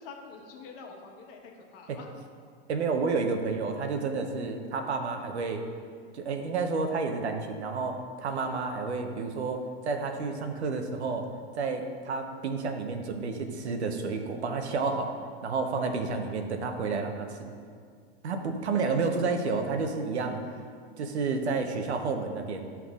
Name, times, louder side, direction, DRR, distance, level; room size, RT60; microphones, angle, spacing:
voice 1, 0.0-2.1 8.3-8.9 15.7-15.9, left 5 dB, 60° left, 1 dB, 1.3 m, -46 dB
voice 2, 2.7-5.6 6.1-11.3 11.5-15.2 15.4-17.5 18.2-20.4 21.0-22.7, right 4 dB, 90° right, 5 dB, 1.0 m, -30 dB
12.5 x 5.9 x 2.4 m, 2.1 s
hypercardioid pair, 120°, 32 cm